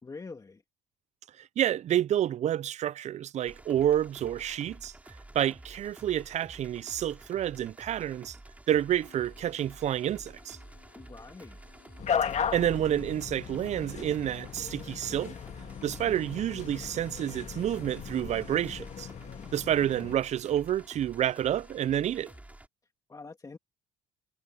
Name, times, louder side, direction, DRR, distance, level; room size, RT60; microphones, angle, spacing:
voice 1, 0.0-0.6 11.0-11.6 23.1-23.6, left 4 dB, 20° left, 2.5 m, -45 dB
voice 2, 1.4-4.9 5.3-8.4 8.7-10.6 12.3-15.3 15.8-19.1 19.5-22.3, right 11 dB, 45° right, 0.4 m, -29 dB
sound 1, 3.5-22.7, right 1 dB, 10° right, 3.6 m, -50 dB
sound 2, 9.0-22.4, left 11 dB, 65° left, 4.8 m, -61 dB
sound 3, 12.0-20.2, left 7 dB, 40° left, 1.8 m, -36 dB
cardioid pair, 110°, 17 cm